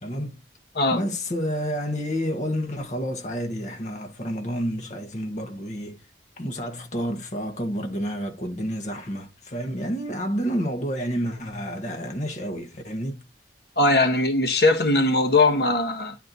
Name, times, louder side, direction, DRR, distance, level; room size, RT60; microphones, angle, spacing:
voice 1, 0.0-0.4 0.9-6.0 6.4-13.2, equal, 40° left, 1.3 m, -29 dB
voice 2, 13.8-16.2, left 2 dB, 60° left, 1.3 m, -20 dB
10.5 x 4.3 x 4.1 m
head